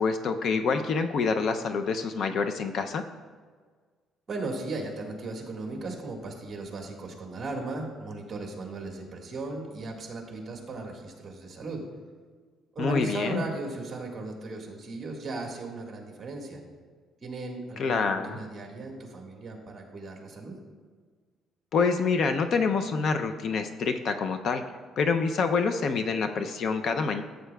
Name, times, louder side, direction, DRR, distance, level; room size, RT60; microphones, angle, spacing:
voice 1, 0.0-3.0 12.8-13.4 17.8-18.4 21.7-24.6 25.0-27.2, left 5 dB, 50° left, 7 dB, 0.4 m, -26 dB
voice 2, 4.3-11.8 12.7-16.6 17.2-20.5, right 2 dB, 30° right, 0 dB, 1.6 m, -36 dB
14.0 x 7.9 x 2.3 m, 1.5 s
cardioid pair, 160°, 0 cm